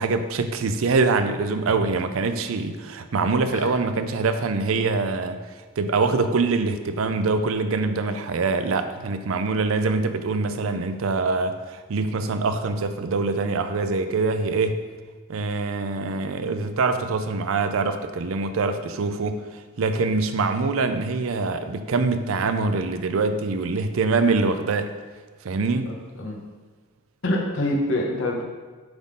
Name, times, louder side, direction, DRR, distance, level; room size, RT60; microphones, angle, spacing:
voice 1, 0.0-5.4 5.8-14.8 15.3-24.9 25.4-26.0, right 3 dB, 65° right, 9 dB, 0.5 m, -24 dB
voice 2, 25.9-26.4 27.2-28.4, left 1 dB, 65° left, 0 dB, 1.1 m, -25 dB
7.9 x 3.8 x 3.7 m, 1.4 s
head